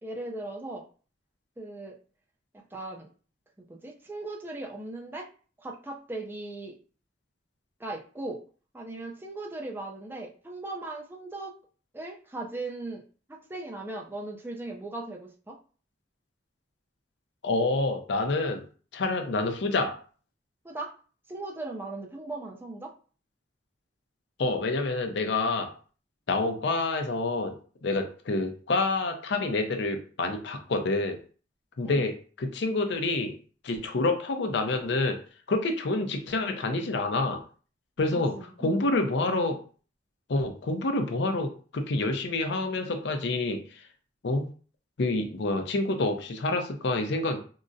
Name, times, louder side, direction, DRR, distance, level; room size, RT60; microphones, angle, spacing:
voice 1, 0.0-0.9 1.6-2.0 2.5-3.1 3.7-5.3 5.6-6.8 7.8-8.4 8.7-11.5 11.9-13.0 13.3-15.6 20.6-20.9 21.3-22.9 31.8-32.1 38.1-38.8, right 2 dB, 10° right, 0 dB, 0.4 m, -38 dB
voice 2, 17.4-18.6 18.9-20.0 24.4-25.7 26.3-27.6 27.8-31.2 31.8-33.4 33.6-35.2 35.5-37.4 38.0-39.6 40.3-43.8 44.2-44.5 45.0-47.4, left 2 dB, 70° left, 5 dB, 0.5 m, -28 dB
3.7 x 2.0 x 2.5 m, 0.39 s
head